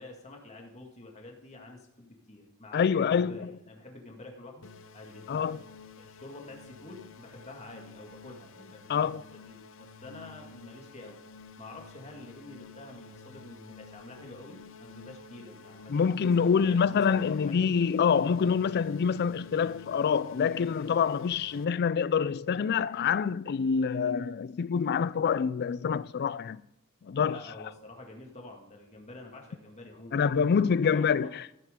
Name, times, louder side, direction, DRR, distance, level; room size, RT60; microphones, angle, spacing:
voice 1, 0.0-5.3 6.0-11.2 11.6-17.6 27.2-30.2 30.8-31.4, left 2 dB, 30° left, 2.0 m, -48 dB
voice 2, 2.7-3.5 5.3-5.6 8.9-9.2 15.9-26.6 27.0-27.4 30.1-31.3, left 6 dB, 50° left, 0.4 m, -26 dB
sound 1, 4.6-21.7, left 4 dB, 65° left, 0.7 m, -51 dB
13.5 x 10.0 x 3.8 m
head